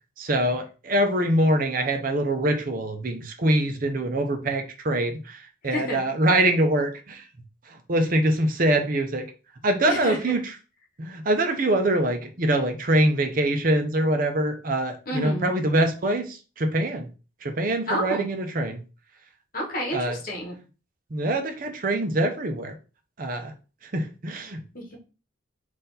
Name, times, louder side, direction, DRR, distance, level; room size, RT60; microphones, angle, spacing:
voice 1, 0.2-7.2 7.7-9.3 9.6-10.4 11.0-17.1 17.4-18.8 19.9-20.2 21.1-22.8 23.2-23.5 23.8-24.6, right 1 dB, 45° right, 0.6 m, -24 dB
voice 2, 5.6-6.0 9.8-10.2 15.1-15.5 17.9-18.3 19.5-20.6 24.7-25.0, left 1 dB, 45° left, 1.2 m, -30 dB
4.2 x 2.6 x 4.0 m
head